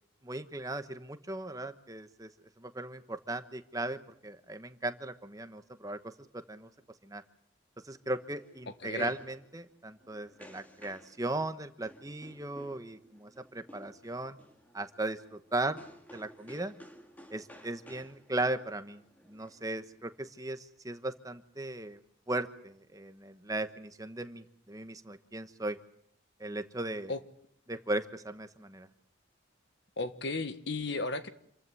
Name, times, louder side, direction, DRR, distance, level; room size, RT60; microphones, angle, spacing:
voice 1, 0.2-2.3 2.6-6.7 7.0-7.2 7.8-14.4 14.7-15.8 16.1-16.7 17.3-19.0 19.3-22.0 22.3-25.8 26.4-27.1 27.7-28.9, right 2 dB, 15° right, 10 dB, 1.1 m, -37 dB
sound 1, 7.8-20.3, equal, 10° left, 2.1 m, -56 dB
voice 2, 8.8-9.1 27.1-27.2 30.0-31.3, left 3 dB, 55° left, 11 dB, 1.5 m, -34 dB
27.5 x 15.0 x 9.7 m, 0.69 s
head